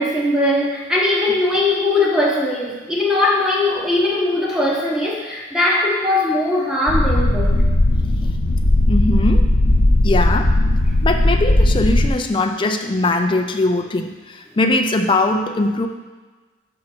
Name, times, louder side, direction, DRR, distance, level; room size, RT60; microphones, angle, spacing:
voice 1, 0.0-7.6, left 2 dB, 5° right, -4 dB, 1.1 m, -19 dB
sound 1, 6.9-12.1, left 1 dB, 75° left, 0.8 m, -16 dB
voice 2, 8.9-9.5 10.0-10.5 11.0-15.9, left 2 dB, 25° left, 4 dB, 0.4 m, -20 dB
6.3 x 5.9 x 4.4 m, 1.3 s
head